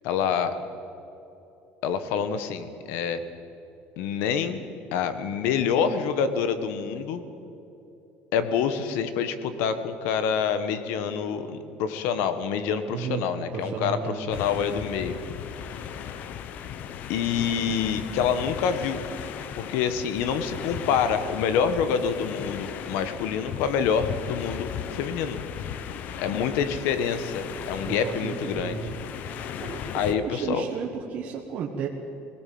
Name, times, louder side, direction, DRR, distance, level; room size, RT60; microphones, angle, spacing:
voice 1, 0.0-0.6 1.8-3.2 4.0-4.6 4.9-7.2 8.3-15.2 17.1-19.0 19.5-25.4 26.2-28.8 29.9-30.7, left 7 dB, 70° left, 11 dB, 1.5 m, -27 dB
voice 2, 12.9-14.3 27.9-28.9 29.6-29.8 30.2-31.9, right 7 dB, 40° right, -1 dB, 1.4 m, -33 dB
sound 1, 14.3-30.1, left 9 dB, 45° left, 0.9 m, -36 dB
21.5 x 17.5 x 7.8 m, 2.9 s
cardioid pair, 170°, 4 cm